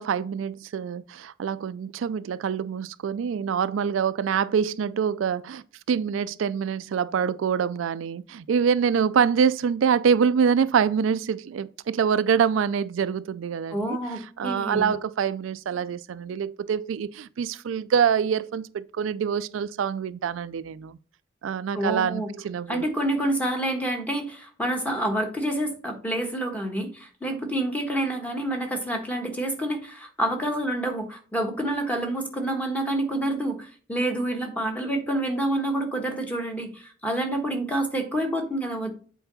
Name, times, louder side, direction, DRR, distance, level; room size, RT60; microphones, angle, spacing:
voice 1, 0.0-14.0 14.4-21.0 21.4-22.9, right 7 dB, 80° right, 0.4 m, -25 dB
voice 2, 13.7-14.9 21.7-22.3 22.7-38.9, right 1 dB, 10° left, 1.3 m, -28 dB
8.0 x 4.6 x 4.0 m
head